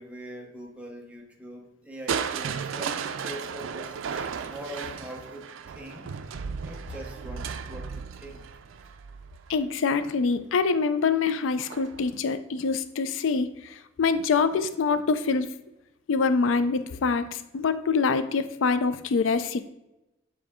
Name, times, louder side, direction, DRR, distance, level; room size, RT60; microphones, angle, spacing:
voice 1, 0.0-6.2 6.6-8.5, equal, 5° right, 1 dB, 0.8 m, -43 dB
Crushing, 2.1-10.0 11.6-12.1 12.6-12.7, right 6 dB, 90° right, 0.4 m, -35 dB
voice 2, 9.5-15.5 16.1-19.7, left 4 dB, 85° left, 11 dB, 0.4 m, -25 dB
7.6 x 3.8 x 3.6 m, 0.91 s
head